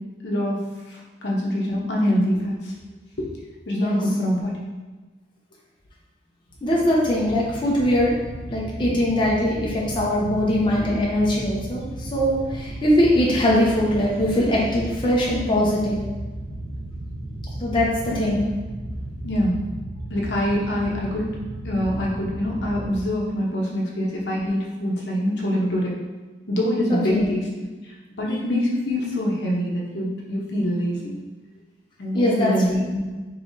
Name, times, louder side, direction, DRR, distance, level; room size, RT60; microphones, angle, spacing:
voice 1, 0.2-0.6 0.9-2.7 3.7-4.5 18.2-18.4 19.2-19.6 20.1-21.3 21.6-26.0 26.5-27.4 28.2-31.2 32.0-33.0, equal, 70° left, -3 dB, 1.0 m, -24 dB
sound 1, 6.5-23.1, right 1 dB, 65° right, 0.9 m, -34 dB
voice 2, 6.6-8.1 8.5-16.0 17.6-18.4 26.9-27.2 32.1-32.8, left 1 dB, 25° left, -5 dB, 0.7 m, -21 dB
5.4 x 3.2 x 2.7 m, 1.3 s
head